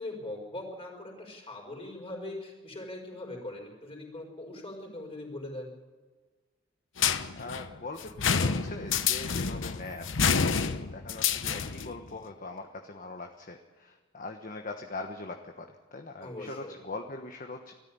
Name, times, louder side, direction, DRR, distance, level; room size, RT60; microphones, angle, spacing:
voice 1, 0.0-5.7 16.2-16.7, left 1 dB, 30° left, 1 dB, 5.1 m, -41 dB
sound 1, 7.0-12.0, left 6 dB, 75° left, 1.0 m, -28 dB
voice 2, 7.4-10.5 10.9-17.7, left 3 dB, 45° left, 4 dB, 1.3 m, -41 dB
19.5 x 14.0 x 9.7 m, 1.3 s
head